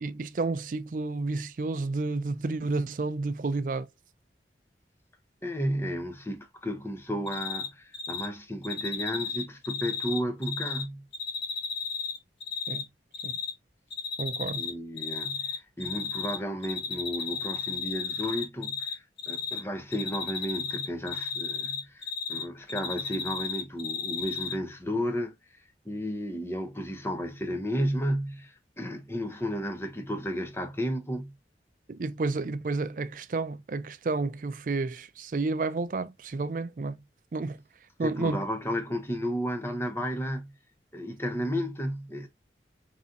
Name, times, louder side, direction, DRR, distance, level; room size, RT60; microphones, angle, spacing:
voice 1, 0.0-3.9 12.7-12.8 13.2-13.3 14.2-14.6 31.9-37.0 37.3-37.6 38.0-38.4, right 3 dB, 50° right, 0.4 m, -31 dB
voice 2, 5.4-11.0 14.6-25.3 25.9-31.3 38.0-40.5 40.9-42.3, equal, 15° left, 0.6 m, -33 dB
Cricket, 7.3-7.7 7.9-8.3 8.6-10.8 11.1-12.8 13.1-13.5 13.9-14.7 15.0-16.4 16.6-18.9 19.2-19.6 19.9-22.4 22.7-24.5, left 5 dB, 70° left, 1.1 m, -33 dB
4.0 x 3.7 x 2.6 m
head